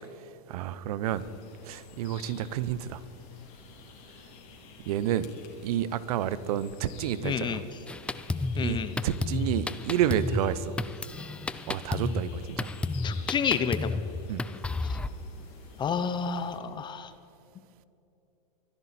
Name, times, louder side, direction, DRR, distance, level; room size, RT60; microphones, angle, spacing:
voice 1, 0.5-1.2 1.6-3.0 4.9-5.3 5.6-7.6 8.6-10.7 11.7-12.7 14.3-14.4, right 11 dB, 60° right, 0.8 m, -30 dB
sound 1, 1.0-16.6, left 5 dB, 50° left, 3.1 m, -51 dB
voice 2, 7.2-7.6 8.6-8.9 13.0-14.0 14.8-15.0 15.8-17.1, left 7 dB, 20° left, 0.7 m, -30 dB
Drum kit, 7.9-15.1, left 3 dB, 5° left, 0.3 m, -32 dB
24.0 x 11.0 x 4.3 m
hypercardioid pair, 120°, 21 cm